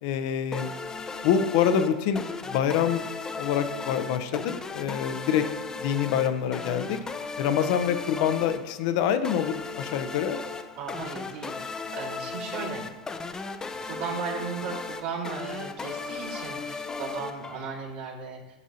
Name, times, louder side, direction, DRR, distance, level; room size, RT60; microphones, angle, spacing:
voice 1, 0.0-0.7 1.2-3.0 3.3-5.4 5.8-7.0 7.4-10.4, left 8 dB, 55° left, 10 dB, 0.7 m, -26 dB
sound 1, 0.5-18.0, left 4 dB, 15° left, 0.5 m, -36 dB
voice 2, 10.8-12.8 13.8-18.4, right 5 dB, 55° right, -4 dB, 2.1 m, -36 dB
11.0 x 6.1 x 2.8 m, 1.1 s
hypercardioid pair, 95°, 4 cm